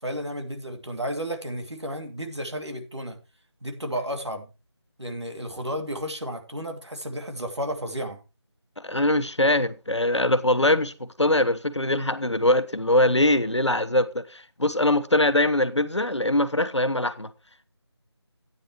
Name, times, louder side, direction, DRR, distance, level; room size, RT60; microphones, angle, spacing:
voice 1, 0.0-3.2 3.6-4.5 5.0-8.2, equal, 75° right, 2.5 m, -32 dB
voice 2, 8.8-17.3, left 1 dB, 85° left, 1.1 m, -22 dB
12.5 x 9.5 x 3.1 m
figure-of-eight pair, 165°, 15 cm